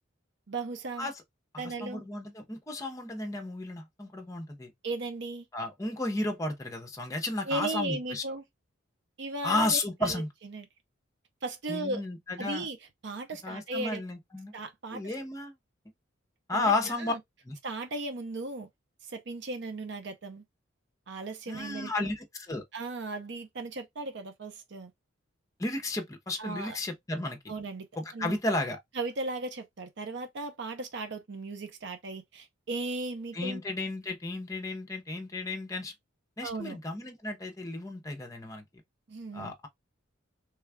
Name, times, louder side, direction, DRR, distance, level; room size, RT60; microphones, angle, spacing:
voice 1, 0.5-1.1 1.6-2.0 4.8-5.5 7.5-8.4 9.2-10.7 11.4-12.0 12.4-12.8 13.0-14.0 14.5-15.1 16.5-17.2 17.6-18.7 19.0-20.4 21.1-22.1 22.7-24.9 26.4-26.8 27.5-27.9 28.1-28.4 29.0-33.6 36.4-36.8 39.1-39.5, right 2 dB, 60° right, 0.6 m, -36 dB
voice 2, 1.8-4.7 5.5-8.2 9.4-10.3 11.7-12.7 13.4-14.5 14.9-15.5 16.5-17.1 17.5-17.6 21.5-22.6 25.6-27.4 28.0-28.8 33.3-35.9 36.4-38.6 39.3-39.7, left 2 dB, 15° left, 0.7 m, -33 dB
3.3 x 2.3 x 3.4 m
head